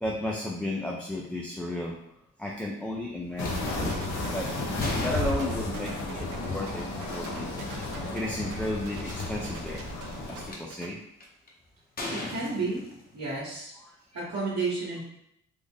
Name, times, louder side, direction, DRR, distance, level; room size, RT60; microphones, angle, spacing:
voice 1, 0.0-2.0 2.4-3.8 4.3-4.5 5.0-7.5 7.7-7.9 8.1-9.8 10.3-11.0 13.8-13.9, left 1 dB, 5° left, -2 dB, 0.3 m, -34 dB
sound 1, 3.4-10.5, left 2 dB, 70° left, 0.8 m, -33 dB
sound 2, 3.4-3.5 4.1-6.0 7.3-7.4 8.1-8.2 8.4-8.8 9.6-10.6 11.2-11.5 12.0-13.4, left 2 dB, 30° left, 0.8 m, -38 dB
sound 3, 3.5-10.9, right 7 dB, 85° right, 0.6 m, -45 dB
voice 2, 12.1-13.7 14.1-15.0, right 3 dB, 65° right, -8 dB, 1.2 m, -32 dB
3.5 x 2.0 x 3.6 m, 0.76 s
cardioid pair, 90°, 30 cm